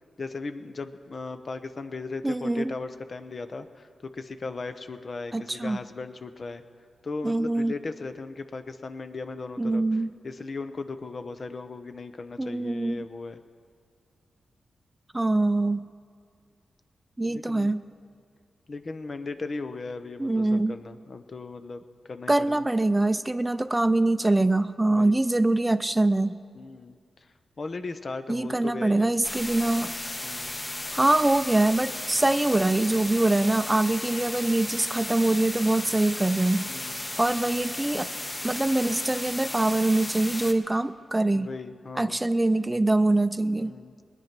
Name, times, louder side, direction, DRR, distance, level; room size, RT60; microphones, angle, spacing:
voice 1, 0.2-6.6 7.0-9.8 10.2-13.4 17.3-17.7 18.7-22.6 24.9-25.1 26.5-29.1 30.2-30.6 36.7-37.0 41.3-42.2 43.6-44.0, left 3 dB, 55° left, 9 dB, 0.8 m, -37 dB
voice 2, 2.2-2.7 5.3-5.8 7.2-7.7 9.6-10.1 12.4-13.0 15.1-15.9 17.2-17.8 20.2-20.8 22.3-26.4 28.3-29.9 30.9-36.7 37.2-38.1 38.4-41.5 42.0-43.7, right 2 dB, 20° right, 12 dB, 0.5 m, -24 dB
sound 1, 29.2-40.5, left 1 dB, 30° left, 1.3 m, -35 dB
20.0 x 9.2 x 6.0 m, 2.1 s
supercardioid pair, 40°, 0 cm